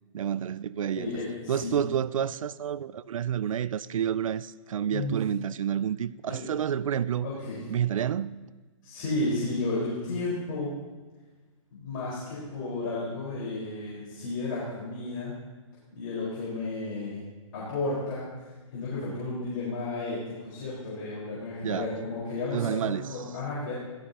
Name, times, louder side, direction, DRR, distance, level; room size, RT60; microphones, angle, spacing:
voice 1, 0.1-1.1 1.5-7.3 7.7-8.5 21.6-21.9 22.5-23.1, right 9 dB, 75° right, 0.4 m, -29 dB
voice 2, 1.0-1.8 4.9-5.2 6.3-6.5 7.2-7.6 8.8-10.7 11.7-15.3 15.9-17.2 17.5-23.7, left 2 dB, 40° left, 4.7 m, -33 dB
17.5 x 13.0 x 2.9 m
hypercardioid pair, 160°, 17 cm